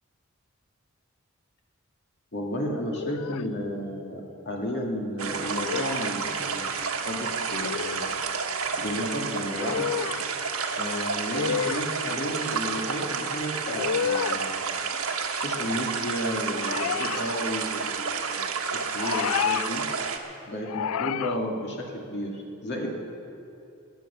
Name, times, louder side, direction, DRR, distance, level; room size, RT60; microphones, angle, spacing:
voice 1, 2.3-8.0 8.8-9.9 10.8-14.6 15.3-19.8 20.5-22.9, equal, 55° left, -1 dB, 2.2 m, -33 dB
sound 1, 2.9-3.5 5.5-6.1 7.6-8.1 9.5-10.3 11.3-11.9 13.7-14.4 16.6-17.3 18.9-19.7 20.6-21.4, left 8 dB, 80° left, 0.4 m, -30 dB
sound 2, 5.2-20.2, right 5 dB, 85° right, 1.4 m, -30 dB
20.5 x 9.5 x 7.0 m, 2.8 s
head